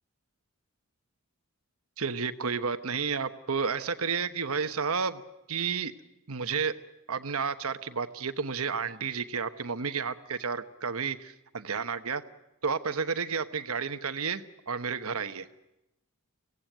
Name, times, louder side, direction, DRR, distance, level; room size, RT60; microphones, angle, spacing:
voice 1, 2.0-5.2 5.5-5.9 6.3-6.7 7.1-12.2 12.6-15.6, right 5 dB, 75° right, 10 dB, 1.1 m, -31 dB
24.5 x 17.0 x 9.2 m, 0.92 s
head